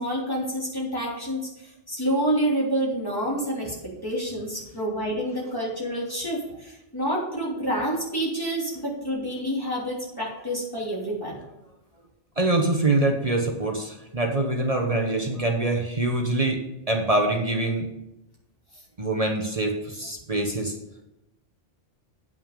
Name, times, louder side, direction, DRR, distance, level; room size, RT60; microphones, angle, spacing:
voice 1, 0.0-3.7 4.0-11.4, right 1 dB, 20° left, -5 dB, 3.2 m, -28 dB
voice 2, 12.4-16.6 16.9-17.9 19.0-20.7, right 2 dB, 35° right, 2 dB, 1.1 m, -24 dB
9.1 x 6.2 x 5.1 m, 0.90 s
omnidirectional pair, 1.2 m